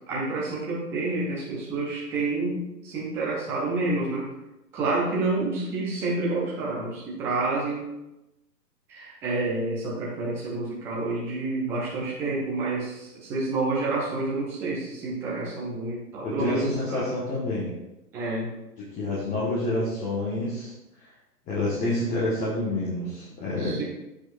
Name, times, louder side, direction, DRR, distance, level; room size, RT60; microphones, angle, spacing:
voice 1, 0.1-4.3 4.7-7.9 8.9-17.0 18.1-18.5 19.3-19.4 23.6-23.8, right 3 dB, 5° right, -6 dB, 0.6 m, -29 dB
voice 2, 16.2-17.7 18.9-20.7 21.5-23.8, left 2 dB, 15° left, -8 dB, 1.4 m, -28 dB
14.0 x 4.9 x 2.5 m, 0.94 s
figure-of-eight pair, 120°, 50 cm